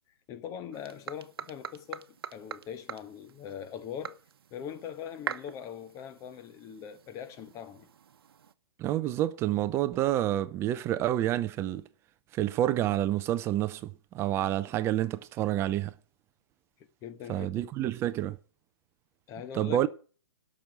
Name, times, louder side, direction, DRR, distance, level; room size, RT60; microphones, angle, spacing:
voice 1, 0.3-4.2 4.5-7.9 17.0-17.6 19.3-19.9, left 8 dB, 25° left, 1.1 m, -41 dB
sound 1, 0.7-8.5, right 8 dB, 65° right, 1.0 m, -44 dB
voice 2, 8.8-11.8 12.3-15.9 17.3-18.4 19.5-19.9, right 13 dB, 20° right, 0.5 m, -28 dB
12.0 x 6.3 x 9.2 m
hypercardioid pair, 140°, 13 cm